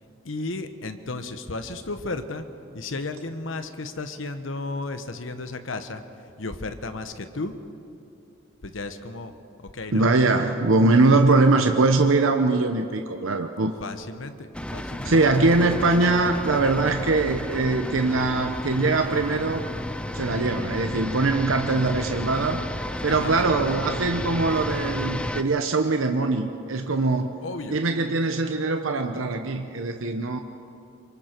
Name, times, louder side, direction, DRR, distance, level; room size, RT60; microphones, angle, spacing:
voice 1, 0.2-2.5 2.7-6.0 6.4-7.5 8.6-9.3 9.6-10.1 13.8-15.3 23.1-23.3 27.4-27.8, left 3 dB, 75° left, 9 dB, 1.2 m, -34 dB
voice 2, 9.9-13.7 15.0-19.6 20.1-22.6 23.0-27.3 27.7-30.4, right 3 dB, 90° right, 5 dB, 0.9 m, -22 dB
sound 1, 14.5-25.4, left 1 dB, 5° left, 0.6 m, -32 dB
26.5 x 24.0 x 4.6 m, 2.6 s
head